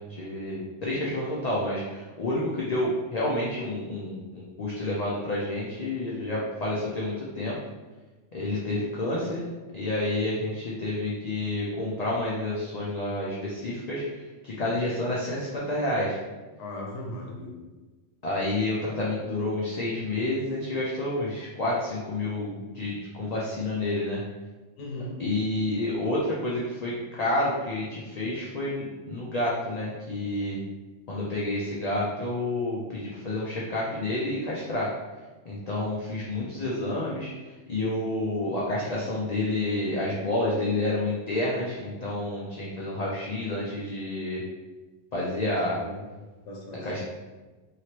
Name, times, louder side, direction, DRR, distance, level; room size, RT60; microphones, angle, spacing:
voice 1, 0.0-7.6 8.3-9.4 9.7-14.0 14.4-16.2 18.2-24.2 25.2-30.6 31.1-34.9 35.5-37.3 37.7-44.4 45.1-45.8 46.8-47.0, left 1 dB, 55° left, -5 dB, 0.4 m, -29 dB
voice 2, 16.6-17.5 24.8-25.1 45.5-46.0 46.5-47.0, left 1 dB, 75° left, -2 dB, 1.1 m, -38 dB
3.0 x 2.8 x 2.9 m, 1.3 s
omnidirectional pair, 1.3 m